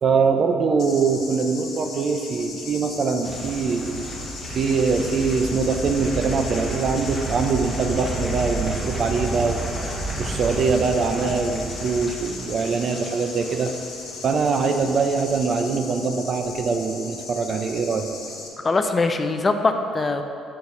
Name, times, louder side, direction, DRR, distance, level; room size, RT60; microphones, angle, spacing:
voice 1, 0.0-3.9 4.5-9.7 10.2-13.7 14.2-18.1, right 5 dB, 45° right, 6 dB, 0.6 m, -23 dB
sound 1, 0.8-18.5, left 4 dB, 65° left, 1.3 m, -38 dB
sound 2, 3.2-14.4 14.6-15.0 15.3-15.4, right 2 dB, 10° right, 1.3 m, -31 dB
voice 2, 18.6-20.2, left 3 dB, 25° left, 7 dB, 0.4 m, -22 dB
6.5 x 4.1 x 5.9 m, 2.7 s
cardioid pair, 100°, 0 cm